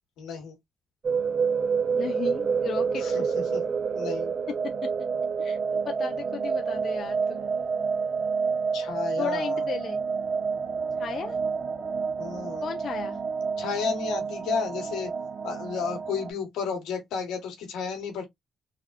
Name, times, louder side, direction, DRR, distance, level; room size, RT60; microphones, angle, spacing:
voice 1, 0.2-0.5 3.0-3.6 3.9-4.3 8.7-9.6 12.2-12.6 13.6-15.1 15.4-18.3, left 6 dB, 90° left, 1.3 m, -32 dB
sound 1, 1.0-16.3, right 5 dB, 45° right, 0.6 m, -28 dB
voice 2, 1.9-3.0 5.4-7.4 9.2-10.0 11.0-11.4 12.6-13.2, left 7 dB, 60° left, 0.4 m, -35 dB
3.4 x 2.3 x 2.3 m
cardioid pair, 90°, 0 cm